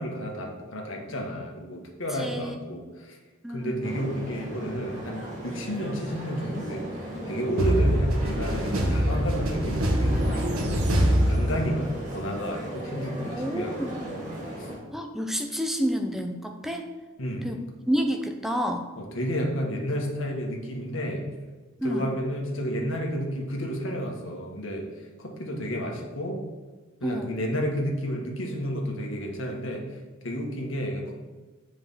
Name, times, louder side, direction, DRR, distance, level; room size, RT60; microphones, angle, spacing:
voice 1, 0.0-3.2 3.5-10.5 11.3-14.2 14.5-14.7 17.2-17.5 19.0-21.2 21.8-24.9 25.2-26.4 27.0-29.8 30.2-31.2, equal, 65° left, 0 dB, 1.5 m, -31 dB
voice 2, 2.1-2.5 3.4-3.8 13.2-14.0 14.9-16.9 17.4-17.6 17.9-18.9 21.8-22.1 27.0-27.3, equal, ahead, 4 dB, 0.6 m, -29 dB
sound 1, 3.8-14.8, equal, 35° right, 2.2 m, -37 dB
sound 2, 7.6-12.0, equal, 85° right, 1.3 m, -24 dB
7.3 x 5.1 x 5.6 m, 1.3 s
head